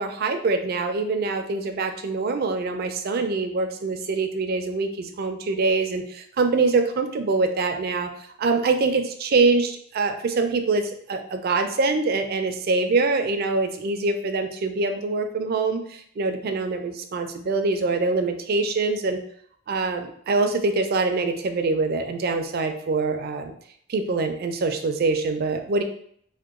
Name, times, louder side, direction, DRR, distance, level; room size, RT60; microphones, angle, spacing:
voice 1, 0.0-8.1 8.4-19.2 19.7-23.5 23.9-25.8, right 3 dB, 50° right, 6 dB, 0.4 m, -24 dB
2.9 x 2.1 x 3.6 m, 0.64 s
head